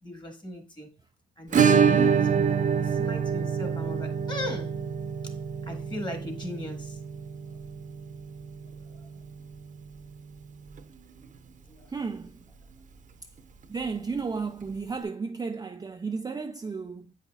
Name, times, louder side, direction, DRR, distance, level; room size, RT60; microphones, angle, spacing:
voice 1, 0.0-0.9 1.4-4.7 5.2-5.4 5.6-7.0 8.9-9.1 11.7-11.9, left 1 dB, 25° left, 1.6 m, -37 dB
Acoustic guitar / Strum, 1.5-10.1 10.4-10.5 10.8-10.9 11.2-11.3 13.4-13.5 14.6-14.7, right 7 dB, 40° right, 0.8 m, -26 dB
voice 2, 11.9-12.4 13.7-17.1, right 4 dB, 20° right, 0.4 m, -33 dB
8.1 x 5.6 x 2.4 m
cardioid pair, 90°, 20 cm